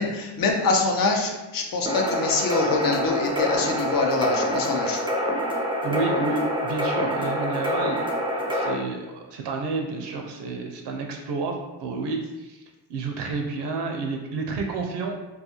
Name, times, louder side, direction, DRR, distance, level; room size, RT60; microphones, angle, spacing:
voice 1, 0.0-5.0, left 3 dB, 50° left, 2 dB, 0.6 m, -24 dB
sound 1, 1.9-8.7, equal, 10° right, 0.5 m, -26 dB
voice 2, 5.8-12.6 12.9-15.2, right 3 dB, 70° right, 2 dB, 0.5 m, -30 dB
2.3 x 2.2 x 2.9 m, 1.0 s
supercardioid pair, 50°, 43 cm